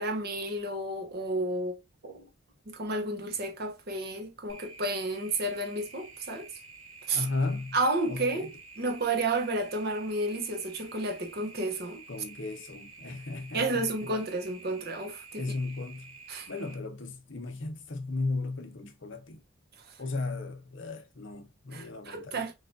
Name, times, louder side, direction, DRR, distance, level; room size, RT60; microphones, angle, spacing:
voice 1, 0.0-2.3 2.7-6.5 7.1-7.3 7.7-8.5 8.8-12.0 13.5-15.4 16.3-16.5 19.8-19.9 21.7-22.5, right 2 dB, 50° right, 0.8 m, -31 dB
sound 1, 4.5-16.8, right 4 dB, 85° right, 1.7 m, -50 dB
voice 2, 7.1-7.8 8.1-8.5 12.1-13.9 15.4-16.1 16.5-19.4 20.0-22.4, left 3 dB, 60° left, 0.8 m, -35 dB
6.2 x 2.5 x 2.6 m
head